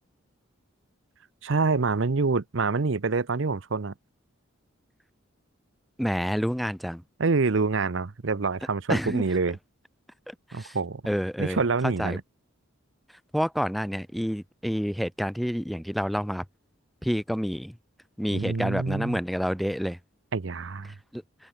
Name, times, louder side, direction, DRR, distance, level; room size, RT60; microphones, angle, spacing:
voice 1, 1.4-3.9 7.2-9.6 10.5-11.0 11.4-12.2 18.3-19.2 20.3-20.9, right 4 dB, 60° right, 0.7 m, -26 dB
voice 2, 6.0-7.0 8.9-9.2 10.3-10.8 11.1-12.2 13.3-16.4 17.0-17.8 18.2-20.0 21.1-21.2, equal, ahead, 2.1 m, -28 dB
open air
head